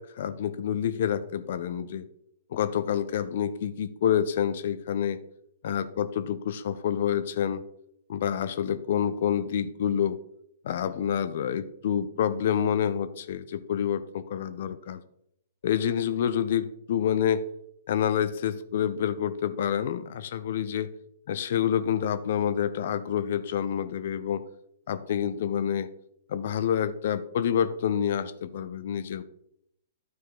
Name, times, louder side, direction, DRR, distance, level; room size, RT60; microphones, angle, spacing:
voice 1, 0.0-2.0 2.5-5.2 5.6-7.6 8.1-10.2 10.6-15.0 15.6-17.5 17.9-20.9 21.3-24.4 24.9-25.9 26.3-29.2, left 9 dB, 55° left, 12 dB, 0.7 m, -28 dB
12.0 x 4.7 x 3.9 m, 0.72 s
figure-of-eight pair, 115°, 0 cm